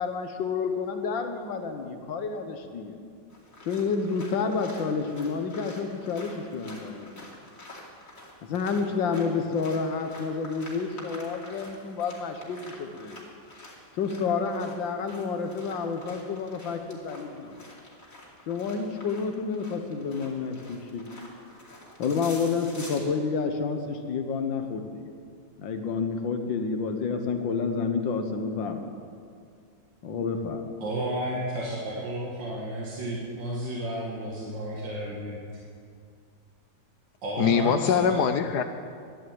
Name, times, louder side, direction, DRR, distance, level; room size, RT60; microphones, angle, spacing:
voice 1, 0.0-3.0 3.7-7.3 8.4-13.2 14.0-17.6 18.5-21.0 22.0-25.1 25.6-28.9 30.0-30.7, left 5 dB, 85° left, 6 dB, 1.9 m, -29 dB
sound 1, 3.3-23.0, left 1 dB, 45° left, 3.0 m, -48 dB
voice 2, 30.8-35.4 37.2-38.3, right 1 dB, 75° right, -4 dB, 2.4 m, -32 dB
voice 3, 37.4-38.6, left 7 dB, 70° left, 9 dB, 1.2 m, -23 dB
13.0 x 11.0 x 7.8 m, 2.2 s
omnidirectional pair, 2.0 m